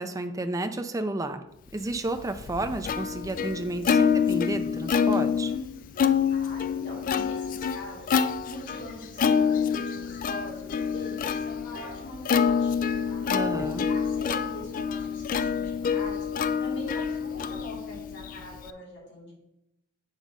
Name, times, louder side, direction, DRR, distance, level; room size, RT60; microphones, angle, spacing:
voice 1, 0.0-1.4 1.7-5.5 13.3-13.9, right 2 dB, 15° right, 8 dB, 0.5 m, -31 dB
Plucked string instrument, 2.0-18.7, left 6 dB, 40° left, 0.3 m, -27 dB
voice 2, 6.3-8.1 8.5-13.2 13.9-16.3 16.6-19.3, left 1 dB, 60° left, -4 dB, 2.5 m, -43 dB
8.1 x 4.0 x 5.0 m, 0.86 s
head